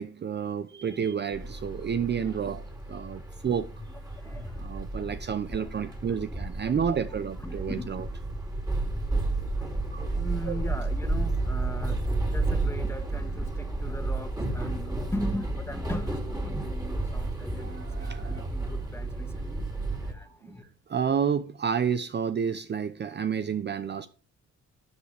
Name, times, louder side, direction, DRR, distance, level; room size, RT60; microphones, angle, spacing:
voice 1, 0.0-2.6 2.9-3.7 4.5-8.1 9.9-10.1 10.5-10.6 17.6-18.7 20.4-24.1, right 7 dB, 35° right, 0.6 m, -30 dB
sound 1, 1.3-20.1, right 2 dB, 10° right, 2.8 m, -32 dB
voice 2, 2.2-2.5 3.1-3.5 3.8-3.9 4.2-4.6 4.9-5.0 5.5-6.4 6.6-7.0 7.4-8.8 9.4-20.6, left 1 dB, 10° left, 1.8 m, -40 dB
12.5 x 7.7 x 3.4 m
cardioid pair, 90°, 30 cm